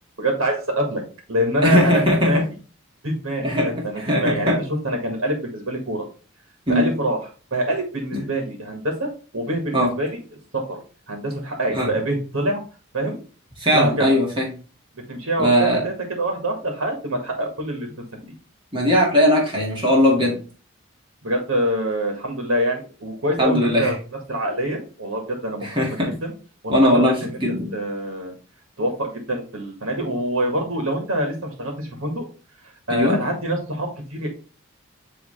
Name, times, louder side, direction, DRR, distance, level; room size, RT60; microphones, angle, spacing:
voice 1, 0.2-1.0 1.3-2.4 3.0-3.5 3.8-4.5 4.8-6.0 6.7-7.2 7.5-9.1 9.3-10.2 10.5-10.8 11.1-12.6 12.9-13.2 13.7-14.2 15.1-18.0 21.2-24.0 24.3-25.7 26.2-26.3 26.6-27.3 27.7-28.3 28.8-32.2 32.9-34.3, right 1 dB, 75° right, 2 dB, 1.8 m, -25 dB
voice 2, 1.6-2.4 3.4-4.6 6.7-6.9 8.1-8.2 9.7-9.9 11.7-11.9 13.6-14.5 15.4-15.8 18.7-20.4 23.4-23.9 25.6-26.1 26.7-27.7 32.9-33.2, equal, 25° right, -3 dB, 2.0 m, -19 dB
8.7 x 3.3 x 3.2 m, 0.36 s
head